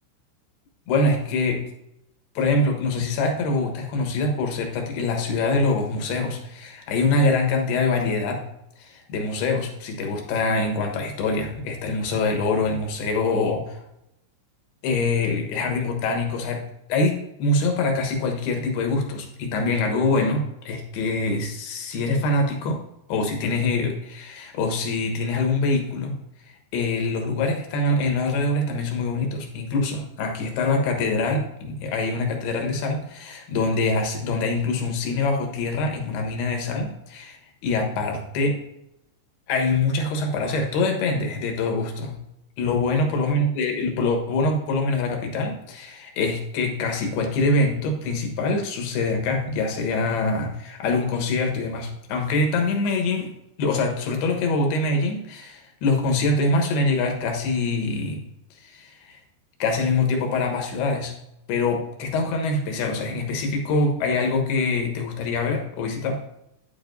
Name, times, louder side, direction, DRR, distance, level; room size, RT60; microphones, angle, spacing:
voice 1, 0.9-1.6 2.4-8.4 8.8-13.8 14.8-16.6 16.9-22.8 23.1-26.2 26.7-38.6 39.5-42.1 42.6-53.3 53.6-58.2 58.6-59.2 59.6-61.1 61.5-66.2, left 3 dB, 70° left, 3 dB, 2.8 m, -24 dB
9.7 x 9.5 x 2.6 m, 0.84 s
omnidirectional pair, 5.6 m